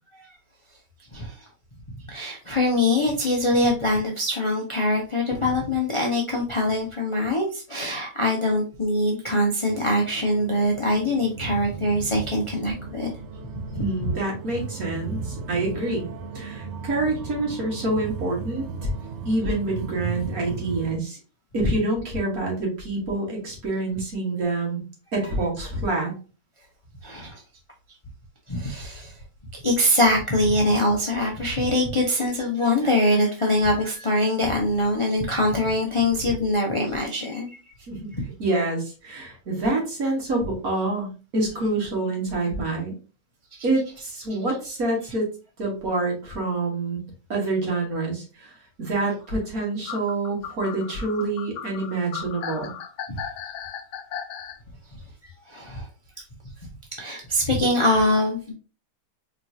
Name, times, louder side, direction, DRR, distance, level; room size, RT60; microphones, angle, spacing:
voice 1, 2.1-13.1 27.0-27.4 28.5-29.1 29.5-37.6 55.5-55.9 57.0-58.5, left 1 dB, 30° left, -1 dB, 0.6 m, -23 dB
sound 1, 9.7-21.0, right 5 dB, 75° right, 0.6 m, -36 dB
voice 2, 13.8-16.1 16.3-18.9 19.3-21.2 21.5-24.8 25.1-26.1 37.9-43.0 43.6-45.3 45.6-47.0 47.3-52.7, right 2 dB, 55° right, -1 dB, 2.0 m, -27 dB
sound 2, 49.9-54.6, left 8 dB, 75° left, 0.7 m, -36 dB
4.4 x 3.2 x 2.7 m, 0.33 s
omnidirectional pair, 1.8 m